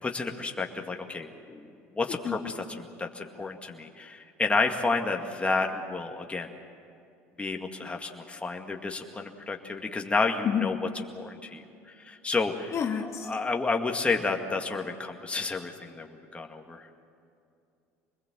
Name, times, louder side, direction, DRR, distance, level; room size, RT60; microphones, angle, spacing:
voice 1, 0.0-1.7 1.9-6.5 7.4-11.6 12.0-16.9, left 3 dB, 15° left, 2 dB, 2.1 m, -31 dB
voice 2, 12.7-13.3, left 8 dB, 40° left, 3 dB, 2.0 m, -29 dB
25.5 x 21.0 x 7.6 m, 2.5 s
hypercardioid pair, 75°, 7 cm